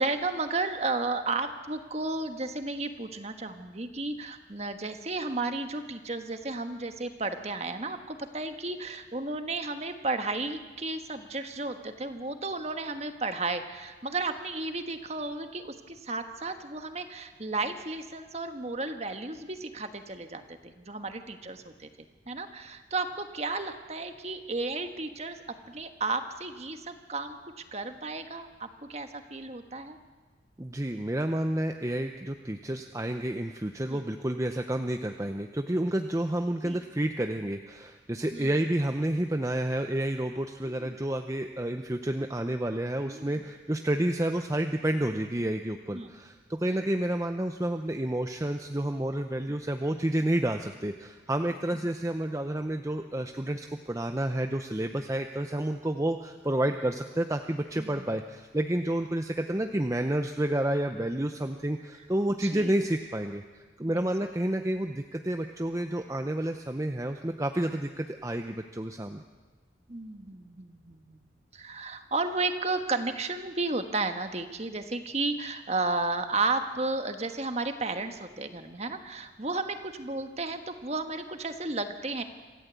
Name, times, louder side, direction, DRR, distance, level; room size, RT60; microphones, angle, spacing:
voice 1, 0.0-25.4 25.7-27.4 27.7-30.0 33.9-34.0 36.6-36.8 38.3-38.6 40.6-41.0 43.0-43.3 45.9-46.1 57.8-58.1 62.4-62.7 63.9-64.1 69.9-71.2 71.5-82.2, right 3 dB, 35° right, 7 dB, 1.4 m, -33 dB
voice 2, 30.6-69.2, right 1 dB, 15° right, 6 dB, 0.7 m, -30 dB
26.5 x 15.0 x 8.2 m, 1.4 s
head